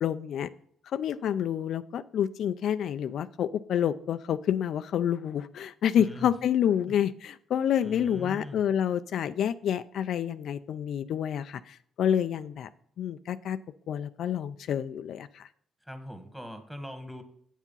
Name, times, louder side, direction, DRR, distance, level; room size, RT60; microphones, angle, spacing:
voice 1, 0.0-0.5 0.9-12.7 13.0-13.6 13.9-15.5, left 9 dB, 70° left, 12 dB, 0.4 m, -28 dB
voice 2, 6.0-6.3 7.8-8.6 15.8-17.2, equal, 5° right, 8 dB, 1.6 m, -41 dB
7.9 x 7.3 x 5.5 m, 0.65 s
cardioid pair, 90°, 0 cm